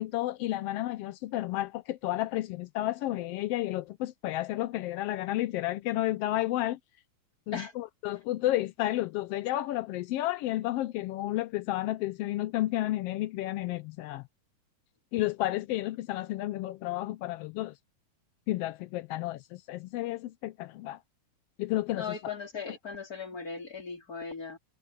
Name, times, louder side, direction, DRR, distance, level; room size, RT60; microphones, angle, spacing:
voice 1, 0.0-6.8 7.5-14.2 15.1-17.7 18.5-21.0 21.6-22.2 22.7-22.8, left 15 dB, 85° left, 1.3 m, -31 dB
voice 2, 22.0-24.6, left 5 dB, 30° left, 4.3 m, -38 dB
omnidirectional pair, 3.3 m